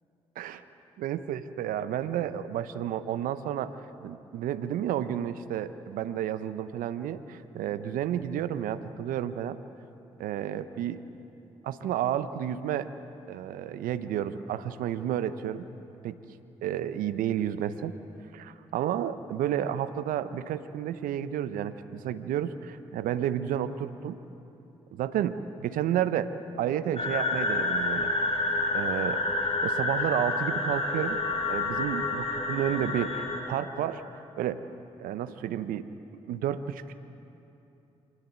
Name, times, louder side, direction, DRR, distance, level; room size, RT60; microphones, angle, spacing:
voice 1, 1.0-9.6 10.2-11.0 11.6-12.9 13.3-15.6 16.0-16.2 16.6-17.9 18.3-24.2 24.9-25.4 25.6-26.3 26.6-28.2 28.7-29.2 29.6-31.2 31.5-34.0 34.4-34.6 35.0-35.9 36.3-36.9, right 10 dB, 75° right, 13 dB, 0.9 m, -31 dB
sound 1, 26.9-33.4, left 2 dB, 45° left, 5.5 m, -29 dB
25.5 x 18.5 x 8.3 m, 2.9 s
hypercardioid pair, 40°, 14 cm